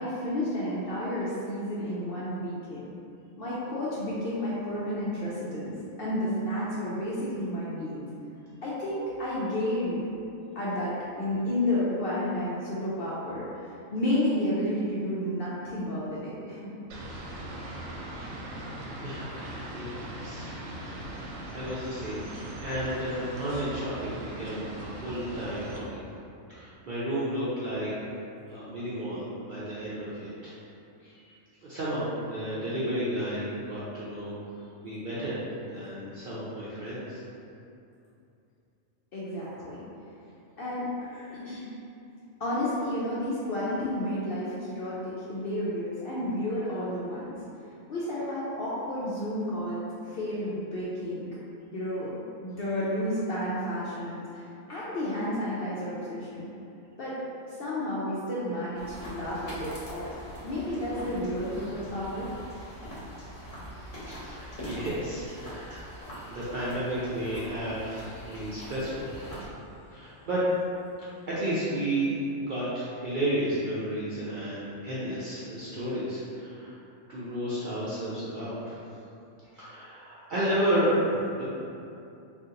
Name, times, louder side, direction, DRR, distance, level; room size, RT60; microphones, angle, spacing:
voice 1, 0.0-2.8 3.4-8.0 8.6-10.0 10.6-16.7 39.1-39.8 40.6-41.7 42.4-47.3 47.9-51.3 51.7-56.5 57.0-57.1 57.4-60.1 60.4-62.3, left 1 dB, 65° left, -8 dB, 0.6 m, -31 dB
sound 1, 16.9-25.8, right 1 dB, 75° right, 0.9 m, -40 dB
voice 2, 19.0-20.9 21.5-22.2 22.6-26.0 26.5-27.9 28.5-30.5 31.0-31.3 31.6-34.3 34.8-35.4 35.7-37.2 64.0-65.8 66.3-69.1 69.9-70.4 71.3-76.8 77.1-78.8 79.5-81.4, right 1 dB, 60° right, -10 dB, 0.5 m, -32 dB
sound 2, 58.7-69.5, equal, 45° left, 0.9 m, -43 dB
2.7 x 2.4 x 3.7 m, 2.7 s
omnidirectional pair, 1.4 m